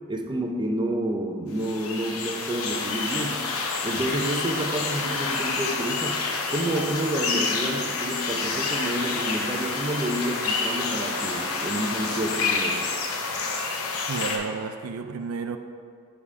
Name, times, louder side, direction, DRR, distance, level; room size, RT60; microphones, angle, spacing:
voice 1, 0.1-3.4 3.8-6.2 6.5-12.8, right 1 dB, 20° right, 2 dB, 0.5 m, -29 dB
sound 1, 1.5-14.4, left 4 dB, 75° left, 0.8 m, -28 dB
voice 2, 14.1-15.6, right 5 dB, 80° right, 8 dB, 0.4 m, -31 dB
5.5 x 5.0 x 4.9 m, 2.1 s
head